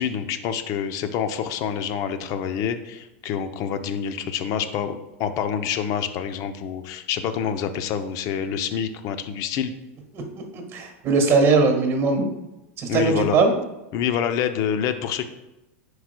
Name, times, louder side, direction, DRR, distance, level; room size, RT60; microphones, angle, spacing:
voice 1, 0.0-9.7 12.9-13.4 13.9-15.3, left 8 dB, 50° left, 10 dB, 0.6 m, -27 dB
voice 2, 10.5-12.3 12.8-13.5, right 4 dB, 35° right, 4 dB, 1.5 m, -20 dB
11.0 x 4.8 x 2.2 m, 0.98 s
hypercardioid pair, 115°, 8 cm